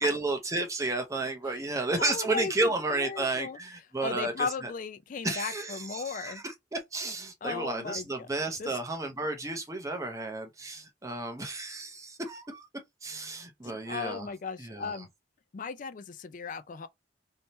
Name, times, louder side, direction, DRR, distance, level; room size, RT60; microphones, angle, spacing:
voice 1, 0.0-4.7 5.2-6.4 6.7-12.7 13.0-14.3 14.6-14.9, right 2 dB, 15° right, 0.7 m, -32 dB
voice 2, 2.0-3.6 4.0-6.4 7.4-8.3 8.6-8.8 13.6-15.1 15.5-16.9, left 5 dB, 45° left, 0.4 m, -36 dB
3.5 x 2.8 x 4.1 m
head